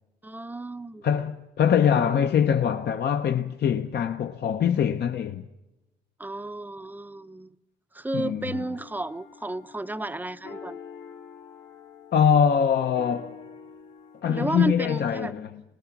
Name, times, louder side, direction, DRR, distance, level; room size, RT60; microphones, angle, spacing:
voice 1, 0.2-1.0 6.2-7.6 7.9-10.8 14.3-15.3, right 2 dB, 10° right, 0.6 m, -32 dB
voice 2, 1.0-5.5 8.1-8.4 12.1-13.4 14.2-15.5, left 8 dB, 55° left, 0.8 m, -23 dB
sound 1, 8.5-14.8, left 6 dB, 80° left, 2.1 m, -45 dB
25.5 x 19.0 x 6.0 m
cardioid pair, 90°, 20 cm